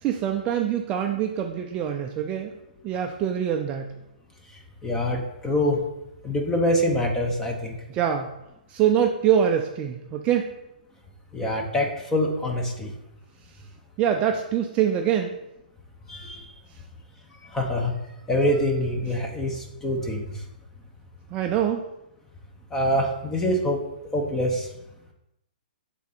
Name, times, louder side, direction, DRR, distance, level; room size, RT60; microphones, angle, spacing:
voice 1, 0.0-2.5 2.8-3.9 7.9-8.3 8.7-10.5 14.0-15.3 21.3-21.8, right 9 dB, 25° right, 4 dB, 0.4 m, -24 dB
voice 2, 4.8-5.8 6.2-7.8 11.3-12.9 16.1-16.5 17.5-17.9 18.3-20.4 22.7-23.8 24.1-24.7, left 1 dB, 10° left, 1 dB, 0.9 m, -25 dB
7.1 x 3.8 x 4.1 m, 0.90 s
hypercardioid pair, 145°, 5 cm